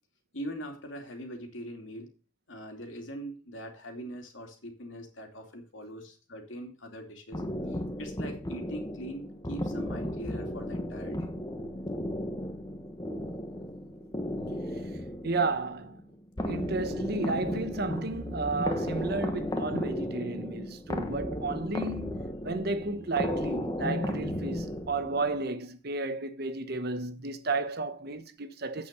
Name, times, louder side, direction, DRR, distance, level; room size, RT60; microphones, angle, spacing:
voice 1, 0.3-2.1 2.5-7.4 7.7-11.3, equal, 75° left, 2.7 m, -42 dB
sound 1, 7.3-25.4, left 1 dB, 20° left, 1.2 m, -34 dB
voice 2, 15.2-16.0 16.4-22.2 22.4-28.9, right 3 dB, 55° right, 1.0 m, -32 dB
8.7 x 6.6 x 6.6 m
head